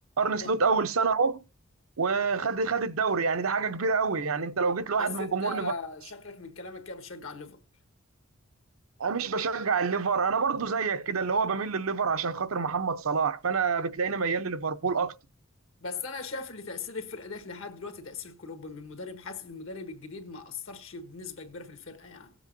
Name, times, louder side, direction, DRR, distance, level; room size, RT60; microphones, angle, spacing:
voice 1, 0.2-1.4 2.0-5.7 9.0-15.1, right 5 dB, 85° right, 0.7 m, -27 dB
voice 2, 5.0-7.6 15.8-22.3, left 4 dB, 75° left, 1.5 m, -39 dB
18.0 x 7.9 x 2.6 m
head